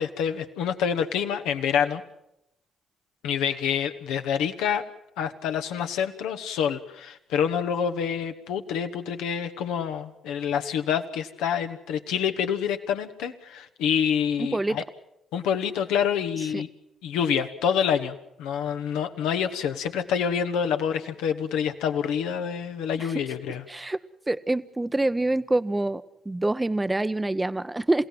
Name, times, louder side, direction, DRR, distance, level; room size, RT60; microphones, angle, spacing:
voice 1, 0.0-2.0 3.2-4.8 5.2-14.8 15.3-16.7 17.0-23.6, left 8 dB, 70° left, 7 dB, 1.2 m, -27 dB
voice 2, 14.4-14.8 16.5-16.6 23.0-23.1 23.7-24.0 24.3-28.1, right 2 dB, 15° right, 13 dB, 0.8 m, -26 dB
28.0 x 17.0 x 7.7 m, 0.85 s
hypercardioid pair, 45°, 0 cm